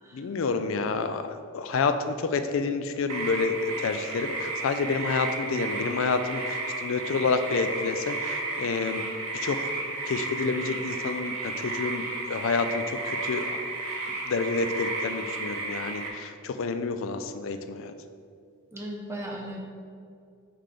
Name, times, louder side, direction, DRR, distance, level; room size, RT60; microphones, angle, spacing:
voice 1, 0.1-9.0 9.3-13.6 14.2-17.9, left 4 dB, 60° left, 9 dB, 0.4 m, -29 dB
sound 1, 3.1-16.1, right 3 dB, 85° right, 0.9 m, -33 dB
voice 2, 18.7-19.6, right 1 dB, 10° right, -1 dB, 0.6 m, -37 dB
5.8 x 3.4 x 5.0 m, 2.3 s
head